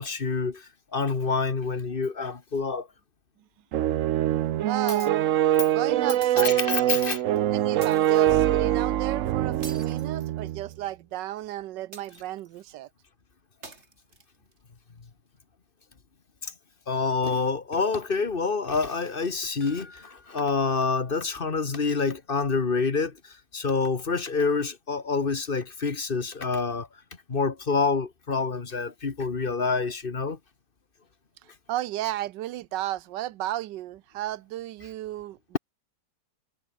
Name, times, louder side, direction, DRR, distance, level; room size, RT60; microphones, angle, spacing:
voice 1, 0.0-2.9 6.4-7.2 16.4-16.5 16.9-26.9 27.3-30.4, left 4 dB, 30° left, 1.6 m, -27 dB
sound 1, 3.7-10.7, right 12 dB, 65° right, 0.8 m, -24 dB
voice 2, 4.6-5.1 5.7-6.9 7.5-12.9 31.7-35.4, right 14 dB, 85° right, 1.4 m, -33 dB
sound 2, 6.2-7.1 7.8-8.4 9.6-10.8 11.9-12.6 13.6-14.6, right 3 dB, 40° right, 3.2 m, -47 dB
sound 3, 19.6-22.1 22.4-22.5 23.0-23.1, left 3 dB, 60° left, 5.6 m, -55 dB
omnidirectional pair, 1.9 m